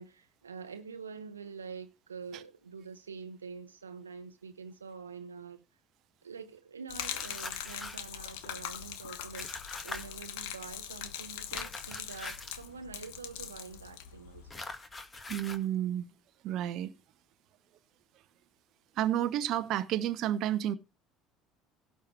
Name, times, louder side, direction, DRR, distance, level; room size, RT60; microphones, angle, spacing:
voice 1, 0.0-5.6 6.2-14.6, right 5 dB, 80° right, 0.8 m, -46 dB
Gurgling / Liquid, 6.9-14.5, left 10 dB, 65° left, 1.2 m, -42 dB
sound 1, 7.0-8.1 9.3-10.0 11.5-12.6 14.5-15.6, left 3 dB, 25° left, 1.9 m, -42 dB
voice 2, 15.3-16.1 16.4-16.9 19.0-20.7, right 11 dB, 50° right, 0.8 m, -30 dB
16.5 x 6.6 x 4.5 m
figure-of-eight pair, 60°, 0 cm